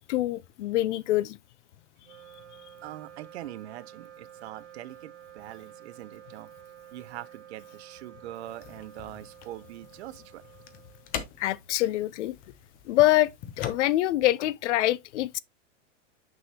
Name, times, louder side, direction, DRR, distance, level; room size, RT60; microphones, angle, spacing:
voice 1, 0.0-1.4 11.4-12.3 12.9-15.4, left 15 dB, 70° left, 0.5 m, -25 dB
Wind instrument woodwind instrument, 2.0-11.6, right 11 dB, 80° right, 1.3 m, -51 dB
voice 2, 2.8-6.5 6.9-10.4, right 14 dB, 60° right, 0.7 m, -43 dB
sound 1, 8.5-14.1, left 8 dB, 25° left, 0.7 m, -42 dB
6.2 x 6.2 x 2.8 m
supercardioid pair, 160°, 37 cm